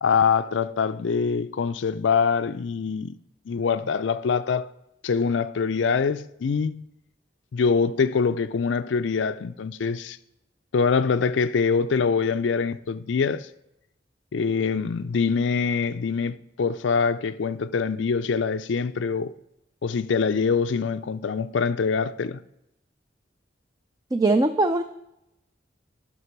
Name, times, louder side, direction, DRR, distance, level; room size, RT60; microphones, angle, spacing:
voice 1, 0.0-3.2 3.5-4.7 5.0-6.8 7.5-10.2 10.7-13.5 14.3-19.3 19.8-22.4, left 5 dB, 90° left, 0.4 m, -24 dB
voice 2, 24.1-24.8, right 2 dB, 20° right, 0.4 m, -20 dB
11.0 x 6.0 x 5.9 m
head